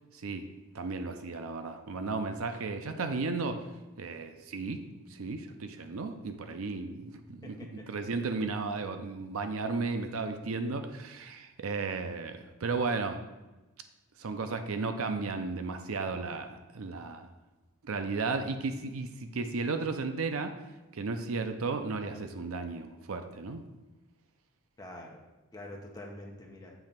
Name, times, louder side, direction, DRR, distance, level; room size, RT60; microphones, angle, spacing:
voice 1, 0.1-0.4 0.7-3.6 4.0-4.8 5.1-13.2 14.2-17.3 17.8-20.5 20.9-23.6, right 4 dB, 70° right, 8 dB, 0.5 m, -34 dB
voice 2, 7.4-7.9 24.8-25.2 25.5-26.7, left 1 dB, 15° left, 0 dB, 0.8 m, -45 dB
7.0 x 3.2 x 5.7 m, 1.1 s
head